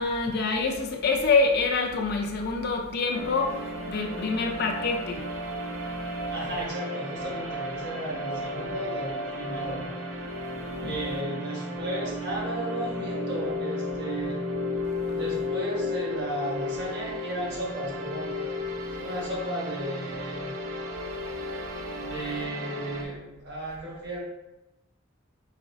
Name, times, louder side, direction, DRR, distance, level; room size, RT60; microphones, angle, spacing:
voice 1, 0.0-6.3 10.3-11.0 14.8-15.2 18.9-19.0 21.1-22.1, left 4 dB, 55° left, 2 dB, 0.5 m, -28 dB
sound 1, 3.1-23.0, left 1 dB, 75° right, 0.5 m, -33 dB
voice 2, 6.3-9.9 10.8-14.4 15.1-18.3 19.0-20.5 22.0-24.2, right 1 dB, 60° right, -3 dB, 1.2 m, -34 dB
4.0 x 3.8 x 2.6 m, 0.94 s
head